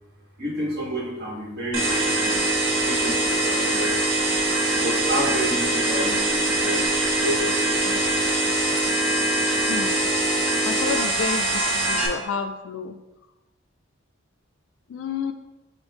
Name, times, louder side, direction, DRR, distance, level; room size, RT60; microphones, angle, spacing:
voice 1, 0.4-2.4 2.7-3.9 4.7-8.2, right 1 dB, 60° right, -3 dB, 1.2 m, -30 dB
sound 1, 1.7-12.1, right 1 dB, 85° right, 0.6 m, -23 dB
voice 2, 9.7-10.0 10.7-13.0 14.9-15.3, left 6 dB, 85° left, 7 dB, 0.3 m, -30 dB
6.0 x 2.0 x 3.5 m, 0.98 s
head